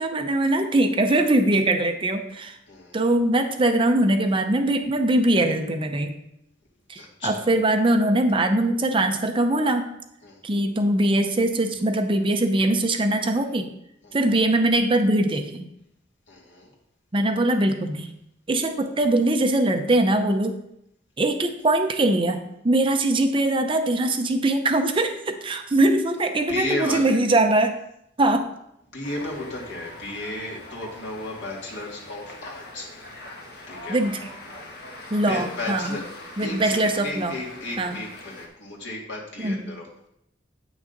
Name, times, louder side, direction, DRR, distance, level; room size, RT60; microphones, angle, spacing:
voice 1, 0.0-2.6 2.9-6.1 6.9-9.9 10.4-13.7 14.1-15.7 17.1-18.1 18.5-20.6 21.2-27.8 28.2-28.5 33.9-34.2 35.1-36.0 36.4-37.3 37.8-37.9 39.4-39.7, right 1 dB, 30° right, 6 dB, 0.6 m, -22 dB
voice 2, 6.9-7.4 10.2-10.4 14.0-14.2 16.3-16.7 26.5-27.2 28.9-33.1 33.7-34.0 35.2-36.1 36.4-39.9, left 2 dB, 80° left, -3 dB, 2.3 m, -34 dB
sound 1, 29.0-38.5, left 2 dB, 55° left, 1.4 m, -42 dB
9.0 x 6.2 x 3.9 m, 0.78 s
head